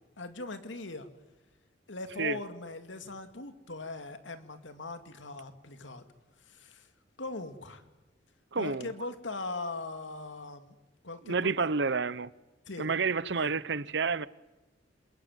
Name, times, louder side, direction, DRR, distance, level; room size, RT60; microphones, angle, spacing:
voice 1, 0.2-1.1 1.9-6.0 6.4-6.9 7.2-7.9 8.5-10.8 11.0-11.5 12.7-12.9 13.3-13.6, left 2 dB, 85° left, 2.3 m, -40 dB
voice 2, 8.5-8.9 11.3-12.3 12.8-14.3, right 4 dB, 65° right, 0.8 m, -29 dB
28.0 x 22.0 x 9.4 m
head